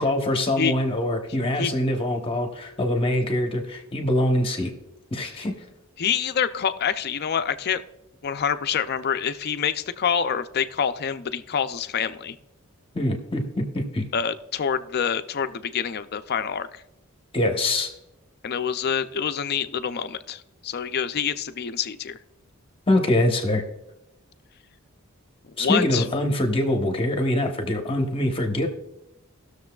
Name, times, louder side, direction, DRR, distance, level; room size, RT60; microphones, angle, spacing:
voice 1, 0.0-4.7 5.1-5.7 12.9-14.0 17.3-17.9 22.9-23.6 25.6-28.7, left 1 dB, 25° left, 3 dB, 1.1 m, -24 dB
voice 2, 6.0-7.8 8.2-12.4 14.1-16.8 18.4-22.2 25.6-26.0, left 7 dB, 50° left, 11 dB, 0.5 m, -26 dB
19.0 x 6.7 x 2.3 m, 0.89 s
head